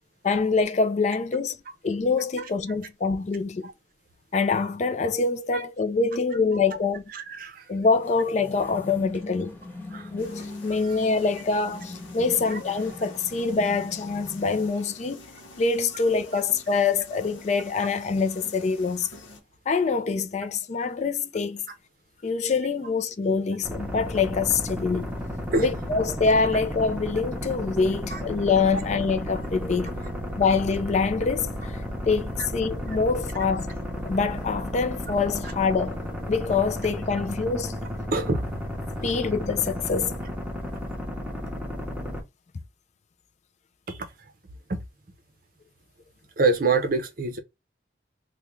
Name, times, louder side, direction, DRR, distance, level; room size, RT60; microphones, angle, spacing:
voice 1, 0.2-1.6 1.8-3.7 4.3-7.0 7.7-9.5 10.1-15.3 15.6-19.1 19.7-21.6 22.2-25.1 25.6-29.9 30.4-33.7 34.0-37.8 39.0-40.2, left 4 dB, 35° left, 0.3 m, -25 dB
voice 2, 7.1-7.7 9.9-10.1 10.8-11.0 12.5-12.6 16.3-16.4 25.5-25.7 28.1-28.2 38.1-38.4 39.0-39.1 43.9-44.1 44.7-44.8 46.4-47.4, right 3 dB, 50° right, 0.6 m, -26 dB
sound 1, 7.9-14.7, left 2 dB, 10° left, 1.1 m, -41 dB
sound 2, 10.2-19.4, left 2 dB, 85° left, 0.8 m, -48 dB
sound 3, 23.6-42.2, equal, 10° right, 0.8 m, -33 dB
3.5 x 2.2 x 3.0 m
head